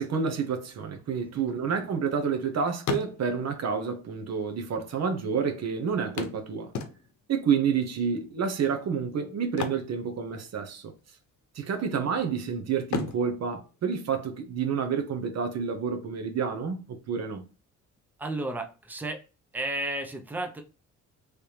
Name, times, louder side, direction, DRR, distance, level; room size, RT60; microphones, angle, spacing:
voice 1, 0.0-6.7 7.3-10.9 11.5-17.4, right 6 dB, 60° right, 0.9 m, -29 dB
voice 2, 1.1-1.5 18.2-19.2 19.5-20.6, right 2 dB, 5° right, 0.7 m, -33 dB
sound 1, 1.5-2.4 2.7-3.6 4.5-4.6 4.8-4.9 6.2-7.4 9.4-10.7 11.0-11.2 11.7-12.4 12.8-14.6 16.6-16.7 17.1-17.2, left 5 dB, 65° left, 0.8 m, -36 dB
3.3 x 3.3 x 2.8 m
cardioid pair, 90°, 30 cm